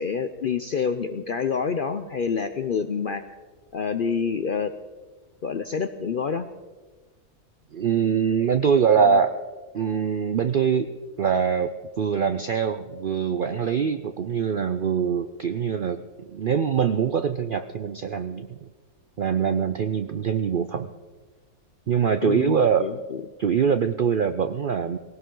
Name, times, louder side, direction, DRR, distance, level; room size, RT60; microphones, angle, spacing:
voice 1, 0.0-3.2 3.7-4.7 5.4-6.5 22.2-23.2, left 6 dB, 60° left, 9 dB, 0.5 m, -27 dB
voice 2, 7.7-9.4 9.7-10.9 11.2-18.7 19.2-20.9 21.9-22.9 23.4-25.0, right 7 dB, 65° right, 9 dB, 0.5 m, -23 dB
18.5 x 18.0 x 3.8 m, 1.3 s
omnidirectional pair, 1.5 m